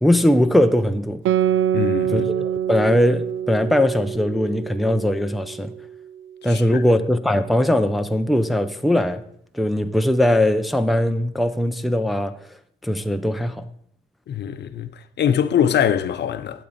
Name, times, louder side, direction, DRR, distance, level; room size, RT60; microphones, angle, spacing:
voice 1, 0.0-1.2 2.1-5.7 6.4-9.2 9.5-12.3 12.8-13.6, left 1 dB, ahead, 0.6 m, -20 dB
Guitar, 1.3-6.2, right 10 dB, 80° right, 0.5 m, -25 dB
voice 2, 1.7-2.3 6.4-6.8 14.3-14.9 15.2-16.7, left 9 dB, 60° left, 0.7 m, -22 dB
12.0 x 8.1 x 4.2 m
cardioid pair, 90°, 20 cm